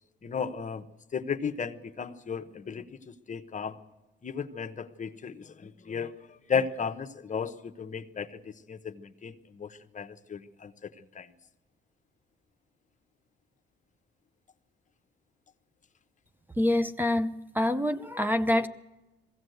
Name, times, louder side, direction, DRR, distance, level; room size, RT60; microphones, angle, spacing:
voice 1, 0.2-0.8 1.1-3.8 4.2-11.3, left 6 dB, 40° left, 11 dB, 1.0 m, -35 dB
voice 2, 16.6-18.7, left 1 dB, 10° right, 11 dB, 0.7 m, -26 dB
20.5 x 16.0 x 7.9 m, 1.1 s
cardioid pair, 90°, 20 cm